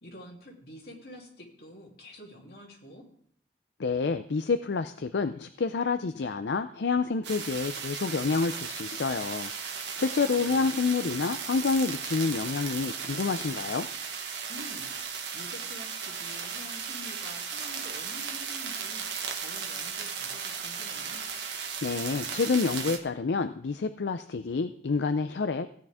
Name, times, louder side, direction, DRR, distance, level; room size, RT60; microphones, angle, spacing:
voice 1, 0.0-3.0 10.3-10.9 14.5-21.2, equal, 60° left, -2 dB, 2.9 m, -48 dB
voice 2, 3.8-13.9 21.8-25.7, left 4 dB, 80° left, 9 dB, 0.5 m, -28 dB
sound 1, 7.2-23.0, right 6 dB, 85° right, 1.5 m, -36 dB
16.0 x 9.5 x 3.6 m, 0.64 s
head